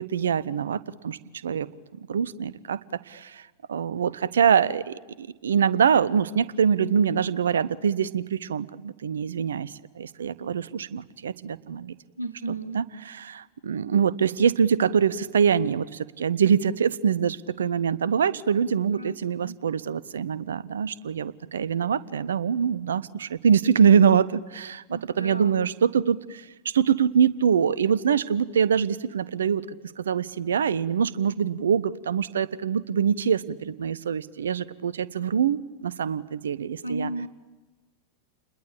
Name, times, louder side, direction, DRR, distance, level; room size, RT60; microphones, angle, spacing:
voice 1, 0.0-1.7 2.1-2.8 3.1-3.4 3.7-12.0 12.7-29.7 30.0-37.1, right 7 dB, 65° right, 20 dB, 0.8 m, -24 dB
voice 2, 12.2-12.8 18.9-19.6 24.9-25.6 36.8-37.3, right 2 dB, 85° right, 11 dB, 1.1 m, -34 dB
29.0 x 21.0 x 8.7 m, 1.2 s
figure-of-eight pair, 90°, 0 cm